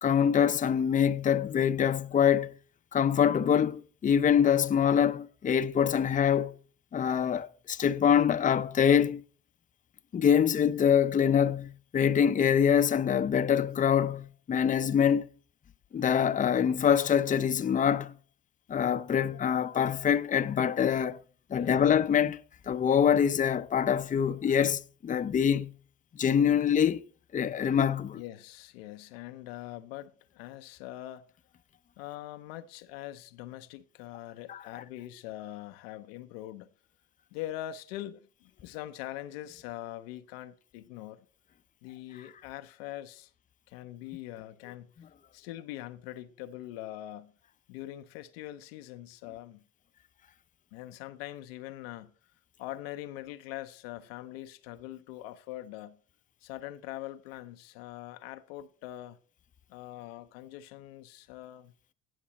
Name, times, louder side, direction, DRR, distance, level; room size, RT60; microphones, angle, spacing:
voice 1, 0.0-2.5 2.9-6.5 6.9-9.2 10.1-15.3 15.9-18.2 18.7-21.2 21.5-22.4 22.7-25.7 26.1-27.0 27.3-28.2 34.5-34.6, left 8 dB, 25° left, 0.6 m, -25 dB
voice 2, 21.6-21.9 28.1-31.3 32.0-36.7 37.3-41.3 41.8-43.3 43.7-44.9 45.3-47.3 47.7-49.7 50.7-52.1 52.6-56.0 56.4-59.2 59.7-61.7, left 14 dB, 85° left, 0.6 m, -43 dB
16.0 x 6.0 x 2.9 m
hypercardioid pair, 70°, 29 cm